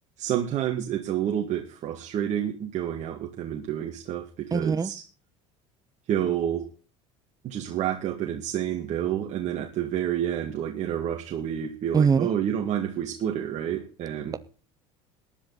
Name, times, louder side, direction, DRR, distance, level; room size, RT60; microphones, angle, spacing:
voice 1, 0.2-4.9 6.1-6.7 7.4-14.4, right 10 dB, 50° right, 2.0 m, -29 dB
voice 2, 4.5-4.9 11.9-12.3, right 6 dB, 25° right, 1.0 m, -22 dB
18.5 x 11.0 x 4.0 m
supercardioid pair, 85°, 15 cm